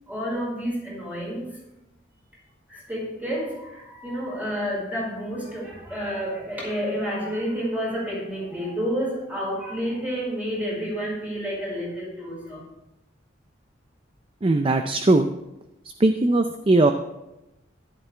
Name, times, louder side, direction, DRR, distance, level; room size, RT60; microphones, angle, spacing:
voice 1, 0.1-1.6 2.7-12.6, equal, 10° right, -4 dB, 4.9 m, -30 dB
voice 2, 14.4-15.3 16.0-16.9, right 2 dB, 30° right, 7 dB, 0.5 m, -19 dB
13.5 x 11.0 x 3.3 m, 0.94 s
head